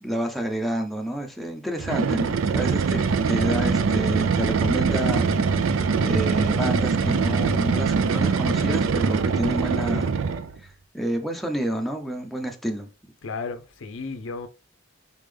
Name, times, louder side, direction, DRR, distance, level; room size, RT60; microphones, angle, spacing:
voice 1, 0.0-5.3 6.0-10.1 10.6-12.9, right 1 dB, ahead, 0.5 m, -29 dB
sound 1, 1.8-10.6, right 5 dB, 75° right, 0.4 m, -23 dB
voice 2, 13.2-14.5, left 4 dB, 70° left, 0.6 m, -33 dB
4.1 x 3.6 x 3.3 m
head